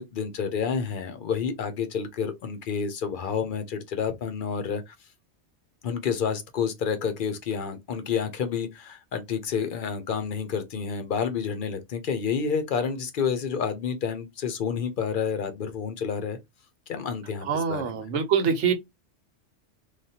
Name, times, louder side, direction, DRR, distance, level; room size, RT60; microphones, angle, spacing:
voice 1, 0.0-4.9 5.8-16.4 16.9-18.0, left 6 dB, 55° left, 0.7 m, -29 dB
voice 2, 17.5-18.7, right 6 dB, 85° right, 1.0 m, -24 dB
3.2 x 2.3 x 2.7 m
omnidirectional pair, 1.2 m